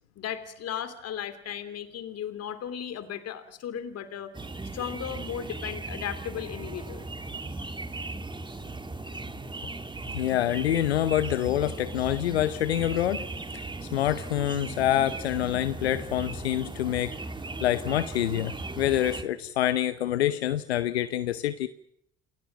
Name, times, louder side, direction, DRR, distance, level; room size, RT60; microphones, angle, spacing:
voice 1, 0.2-4.3 4.7-7.1, left 9 dB, 50° left, 12 dB, 3.1 m, -36 dB
sound 1, 4.3-19.2, right 2 dB, 15° right, 2.2 m, -37 dB
voice 2, 10.1-13.2 13.5-13.6 13.9-17.2 17.6-21.7, left 12 dB, 90° left, 13 dB, 0.8 m, -26 dB
28.0 x 16.5 x 7.5 m, 0.77 s
hypercardioid pair, 65°, 31 cm